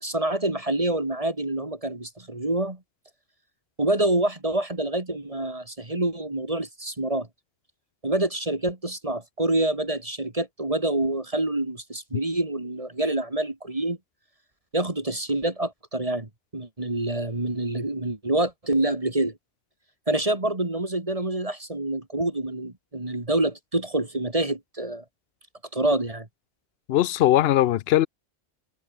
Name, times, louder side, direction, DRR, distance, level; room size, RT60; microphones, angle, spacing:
voice 1, 0.0-2.8 3.8-7.3 8.0-14.0 14.7-19.4 20.1-25.0 25.7-26.3, right 1 dB, 30° right, 2.3 m, -27 dB
voice 2, 26.9-28.1, left 13 dB, 65° left, 0.7 m, -20 dB
omnidirectional pair, 1.2 m